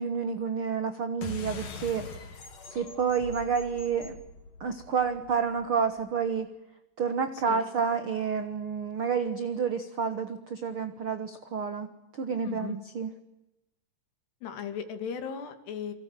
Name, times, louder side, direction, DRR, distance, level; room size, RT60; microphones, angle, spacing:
voice 1, 0.0-2.1 2.7-4.2 4.6-6.5 7.0-11.9 12.1-13.1, right 6 dB, 75° right, 9 dB, 1.2 m, -29 dB
sound 1, 1.2-6.1, left 3 dB, 55° left, 4.2 m, -43 dB
voice 2, 12.4-12.8 14.4-15.9, left 7 dB, 80° left, 8 dB, 4.5 m, -36 dB
29.0 x 25.0 x 7.6 m, 0.93 s
omnidirectional pair, 4.7 m